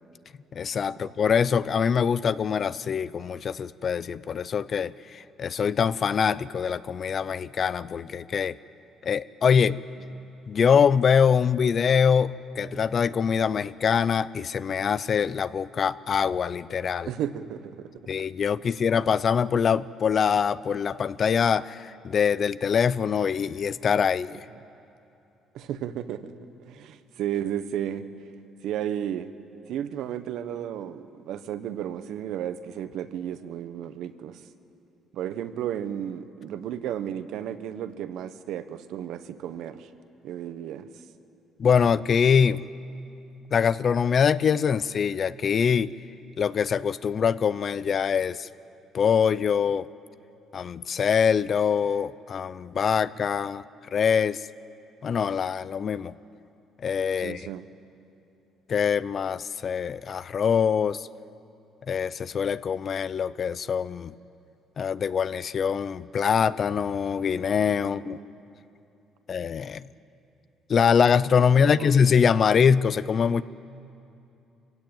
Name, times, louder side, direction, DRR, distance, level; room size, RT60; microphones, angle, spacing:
voice 1, 0.5-8.6 9.0-9.8 10.5-17.1 18.1-24.4 41.6-42.7 43.5-45.9 46.4-48.5 48.9-49.9 50.5-53.6 53.9-54.4 55.0-56.1 56.8-57.5 58.7-61.1 61.9-64.1 64.8-68.2 69.3-69.8 70.7-73.4, left 7 dB, 45° left, 17 dB, 0.5 m, -24 dB
voice 2, 17.0-17.9 25.5-26.3 26.7-28.1 28.6-29.3 29.7-34.4 35.1-39.9 40.2-40.9 52.9-53.3 57.2-57.6 67.8-68.4 71.4-71.9, right 10 dB, 75° right, 11 dB, 1.0 m, -33 dB
25.0 x 16.5 x 8.9 m, 2.7 s
cardioid pair, 110°, 0 cm